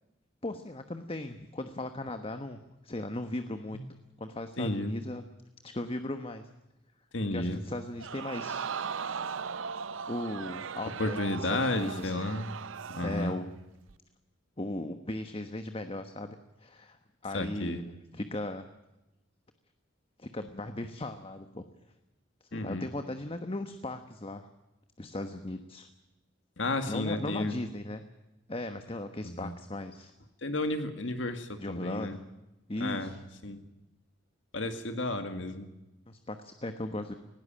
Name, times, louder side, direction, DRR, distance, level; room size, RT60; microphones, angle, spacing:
voice 1, 0.4-2.6 2.8-3.8 4.2-5.2 5.6-6.5 7.3-8.7 8.9-9.2 10.1-12.3 13.0-13.5 14.6-17.9 18.1-18.7 20.2-21.7 22.5-24.5 25.0-25.9 26.9-28.0 28.5-30.1 31.5-32.2 32.7-33.2 36.1-37.1, left 1 dB, 30° left, 8 dB, 1.2 m, -37 dB
voice 2, 4.6-4.9 7.1-7.6 11.0-12.5 12.9-13.4 17.3-17.8 22.5-22.9 26.6-27.6 29.2-29.5 30.4-32.2 32.8-33.1 33.4-33.6 34.5-35.7, left 2 dB, 70° left, 7 dB, 2.0 m, -32 dB
Crowd, 8.0-13.5 13.9-14.0, right 6 dB, 90° right, 0.7 m, -38 dB
19.5 x 17.0 x 8.9 m, 0.99 s
head